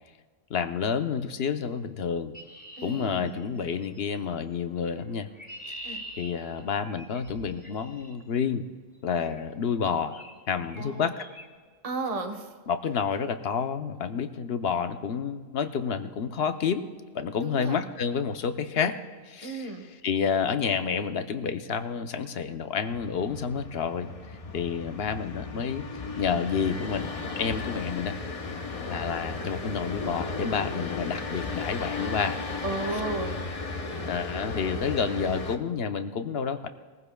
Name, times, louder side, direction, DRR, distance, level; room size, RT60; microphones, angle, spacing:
voice 1, 0.5-2.3 2.8-5.3 5.7-8.6 9.0-11.3 12.7-16.9 17.1-19.0 19.3-24.1 24.5-25.9 26.2-28.2 28.8-32.4 32.9-33.0 34.1-36.7, left 6 dB, 60° left, 9 dB, 0.9 m, -29 dB
Chirp tweet, 2.3-4.0 5.0-8.1 9.2-9.5 10.1-10.4 10.6-10.9 11.2-11.5, equal, 5° left, 2.2 m, -44 dB
voice 2, 2.8-3.4 5.8-6.0 10.8-11.1 11.8-12.4 17.4-17.8 19.4-19.8 32.6-33.5, right 3 dB, 30° right, 3 dB, 1.0 m, -33 dB
sound 1, 22.8-35.6, left 3 dB, 35° left, 0.7 m, -35 dB
21.0 x 15.0 x 2.2 m, 1.5 s
omnidirectional pair, 1.3 m